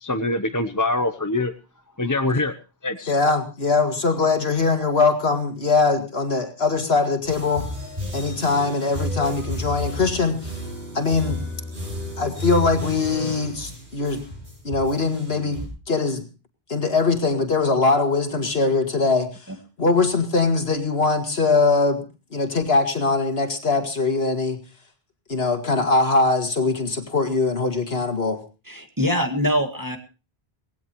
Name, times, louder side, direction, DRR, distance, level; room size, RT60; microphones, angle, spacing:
voice 1, 0.0-1.5 2.0-2.5 2.8-3.1, left 2 dB, 20° left, 7 dB, 0.8 m, -24 dB
voice 2, 3.1-7.7 8.1-10.6 10.9-11.4 12.2-14.2 14.6-16.2 16.7-19.3 19.8-22.1 22.3-24.6 25.3-28.4, left 3 dB, 70° left, 6 dB, 2.3 m, -21 dB
sound 1, 7.2-15.7, left 1 dB, 50° right, 7.4 m, -32 dB
voice 3, 28.7-30.0, equal, 20° right, 4 dB, 1.9 m, -23 dB
19.5 x 17.0 x 3.1 m, 0.32 s
omnidirectional pair, 1.1 m